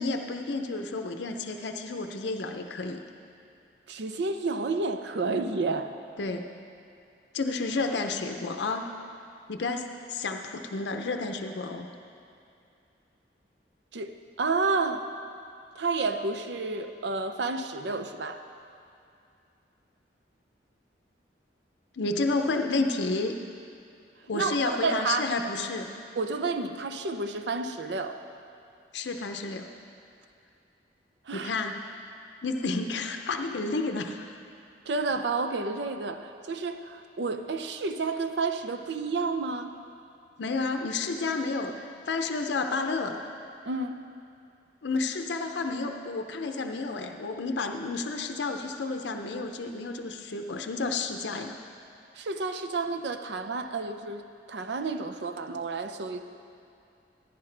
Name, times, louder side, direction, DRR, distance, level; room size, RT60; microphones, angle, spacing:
voice 1, 0.0-3.0 6.2-6.5 7.3-8.9 9.5-11.9 22.0-23.3 24.3-25.9 28.9-29.7 31.3-31.8 32.4-34.3 40.4-43.2 44.8-51.6, left 3 dB, 75° left, 5 dB, 0.6 m, -31 dB
voice 2, 3.9-5.9 13.9-15.1 15.8-18.4 24.3-25.3 26.2-28.2 31.3-31.5 34.9-39.7 43.6-44.0 52.1-56.2, right 3 dB, 70° right, 8 dB, 0.6 m, -30 dB
14.5 x 10.5 x 3.3 m, 2.6 s
head